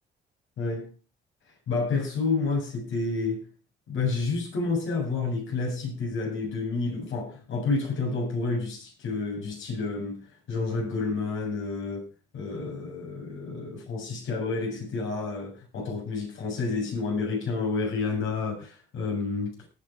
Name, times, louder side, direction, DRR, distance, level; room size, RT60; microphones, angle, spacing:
voice 1, 0.6-0.9 1.7-3.5 3.9-12.1 12.3-19.5, left 4 dB, 80° left, 7.4 m, -29 dB
19.0 x 7.0 x 4.9 m
cardioid pair, 90°, 20 cm